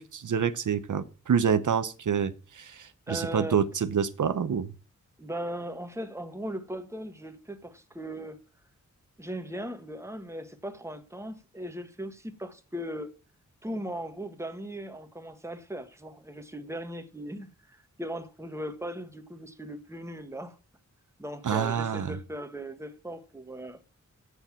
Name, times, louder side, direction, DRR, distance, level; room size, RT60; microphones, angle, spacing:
voice 1, 0.0-4.7 21.4-22.2, right 7 dB, 80° right, 0.9 m, -27 dB
voice 2, 3.1-3.7 5.2-8.4 9.2-13.1 13.6-20.6 21.2-23.8, equal, 10° right, 1.5 m, -38 dB
8.0 x 6.7 x 7.3 m
wide cardioid pair, 95°, 30 cm